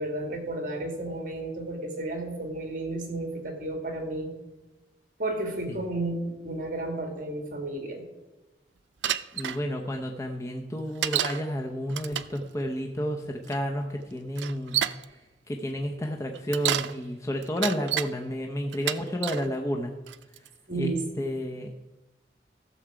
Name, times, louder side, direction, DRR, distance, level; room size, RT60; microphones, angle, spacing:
voice 1, 0.0-4.3 5.2-8.0 20.7-21.0, right 2 dB, 50° right, 4 dB, 2.3 m, -32 dB
Bicycle, 9.0-9.6 11.0-11.4 11.9-12.4 13.5-13.6 14.4-15.0 16.3-16.9 17.4-18.1 18.7-19.5 20.1-20.5, right 11 dB, 85° right, 0.4 m, -29 dB
voice 2, 9.3-14.8 15.5-19.9 20.8-21.7, equal, 20° left, 2 dB, 0.7 m, -31 dB
14.5 x 7.0 x 4.9 m, 1.1 s
head